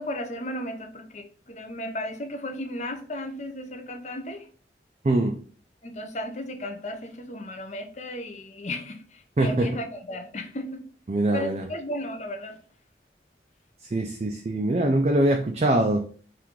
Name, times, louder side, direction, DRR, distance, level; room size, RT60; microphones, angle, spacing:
voice 1, 0.0-4.5 5.8-10.8 11.3-12.6, left 1 dB, 40° left, 0.6 m, -35 dB
voice 2, 5.0-5.4 9.4-9.7 11.1-11.6 13.9-16.0, right 1 dB, 35° right, 0.4 m, -23 dB
4.6 x 2.5 x 3.6 m
head